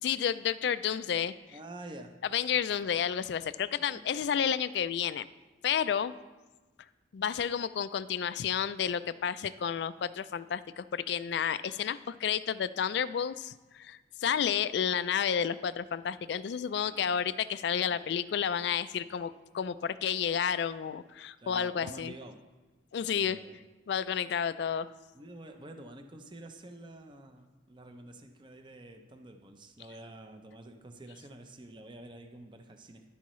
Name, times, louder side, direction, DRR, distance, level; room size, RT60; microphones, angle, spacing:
voice 1, 0.0-1.3 2.3-5.3 5.6-6.1 7.1-22.1 22.9-23.4 23.9-24.9, left 8 dB, 60° left, 15 dB, 0.3 m, -31 dB
voice 2, 1.5-2.1 3.9-4.0 16.9-17.2 17.8-18.2 19.0-19.1 21.4-22.4 23.0-23.6 25.1-33.0, right 2 dB, 25° right, 6 dB, 0.6 m, -48 dB
11.0 x 8.3 x 3.1 m, 1.2 s
head